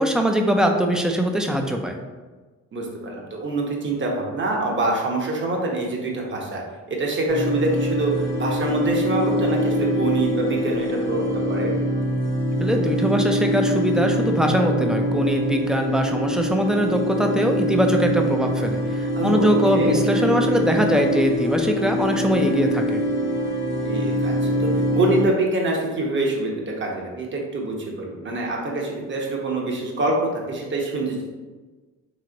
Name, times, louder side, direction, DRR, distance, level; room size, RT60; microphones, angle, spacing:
voice 1, 0.0-2.0 12.6-23.0, equal, ahead, 3 dB, 0.5 m, -22 dB
voice 2, 2.7-6.6 6.9-11.7 19.2-20.0 23.8-24.3 24.6-26.5 26.8-30.1 30.5-31.2, right 2 dB, 40° right, -1 dB, 1.0 m, -25 dB
sound 1, 7.3-25.2, equal, 60° left, 1.0 m, -24 dB
3.3 x 3.2 x 3.8 m, 1.3 s
cardioid pair, 90°, 30 cm